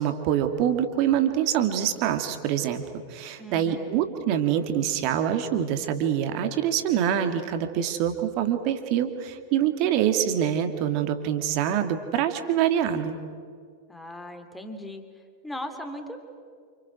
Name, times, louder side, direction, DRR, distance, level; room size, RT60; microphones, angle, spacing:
voice 1, 0.0-2.8 3.1-13.2, right 10 dB, 45° right, 7 dB, 2.6 m, -25 dB
voice 2, 3.4-4.1 13.9-15.0 15.4-16.2, equal, 5° left, 6 dB, 2.9 m, -38 dB
29.0 x 28.5 x 6.3 m, 2.1 s
figure-of-eight pair, 90°, 0 cm